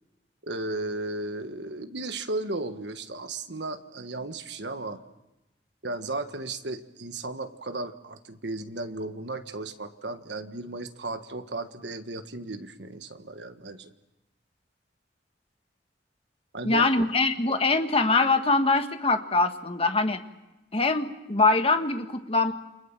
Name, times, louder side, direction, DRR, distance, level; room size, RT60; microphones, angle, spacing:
voice 1, 0.4-5.0 5.8-13.9 16.5-16.9, right 2 dB, 70° right, 8 dB, 1.5 m, -35 dB
voice 2, 16.6-20.2 20.7-22.5, left 3 dB, 30° left, 7 dB, 1.5 m, -23 dB
29.0 x 24.0 x 7.5 m, 0.99 s
head